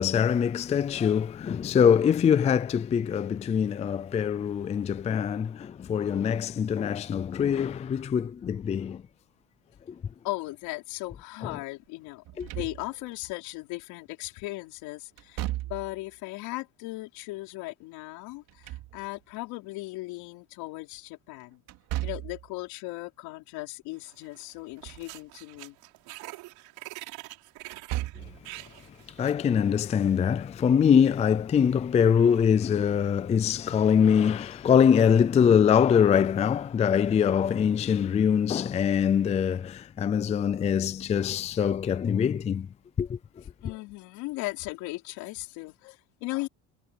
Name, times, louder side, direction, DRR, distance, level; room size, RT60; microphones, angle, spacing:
voice 1, 0.0-9.0 11.5-11.6 12.4-12.5 29.2-42.7 43.0-43.2, left 7 dB, 20° left, 0.4 m, -23 dB
voice 2, 10.2-12.2 12.5-21.6 22.0-25.8 43.6-46.5, left 21 dB, 80° left, 4.3 m, -37 dB
Slam / Thump thud, 12.3-13.2 15.2-16.1 18.3-19.4 21.7-22.5 24.6-25.1 25.5-25.6 27.6-28.4, right 15 dB, 65° right, 4.8 m, -35 dB
sound 1, 24.0-24.5 24.8-29.4, right 20 dB, 80° right, 4.6 m, -45 dB
cardioid pair, 145°, 36 cm